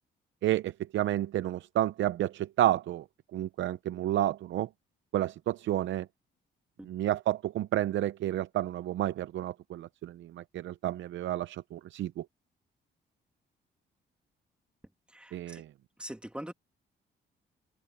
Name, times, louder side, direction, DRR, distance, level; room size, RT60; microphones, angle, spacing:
voice 1, 0.4-3.0 3.3-4.7 5.1-6.1 6.8-12.3 15.3-15.7, right 13 dB, 70° right, 0.6 m, -30 dB
voice 2, 15.1-15.6 16.0-16.5, right 1 dB, 5° right, 2.4 m, -43 dB
open air
cardioid pair, 90°, 20 cm